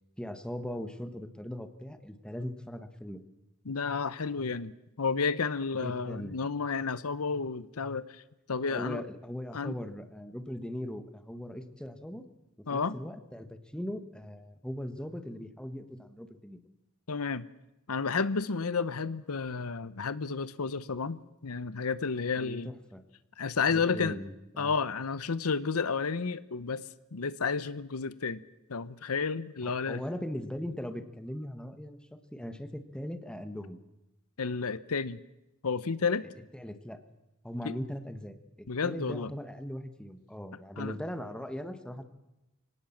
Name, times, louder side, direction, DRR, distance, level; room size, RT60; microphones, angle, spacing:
voice 1, 0.2-3.2 5.8-6.4 8.7-12.2 12.7-16.6 22.4-23.0 23.7-24.7 29.6-33.8 36.5-37.0 37.4-42.1, equal, 5° left, 9 dB, 1.4 m, -39 dB
voice 2, 3.6-4.7 5.0-8.2 8.5-9.0 9.5-9.7 12.7-13.0 17.1-17.4 17.9-22.7 23.4-24.2 24.6-26.8 27.1-28.4 28.7-30.0 34.4-35.2 35.6-36.3 37.6-37.8 38.7-39.3 40.8-40.9, left 5 dB, 80° left, 16 dB, 0.8 m, -31 dB
24.5 x 18.0 x 7.3 m, 0.94 s
head